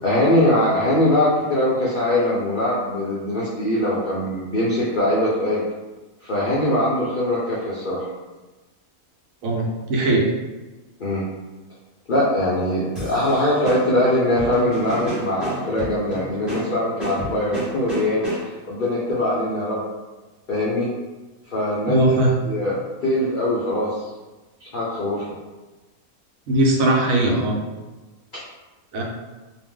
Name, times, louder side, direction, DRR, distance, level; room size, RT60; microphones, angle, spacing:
voice 1, 0.0-5.6 6.2-8.1 11.0-11.2 12.1-19.8 20.5-20.9 21.5-22.1 22.5-24.1 24.6-25.4, left 1 dB, 70° left, -7 dB, 0.4 m, -22 dB
voice 2, 9.4-10.3 21.9-22.3 26.5-27.6 28.9-29.0, right 1 dB, 70° right, -1 dB, 0.9 m, -19 dB
sound 1, 12.9-18.7, right 1 dB, ahead, 0.8 m, -32 dB
2.5 x 2.0 x 3.6 m, 1.2 s
omnidirectional pair, 1.5 m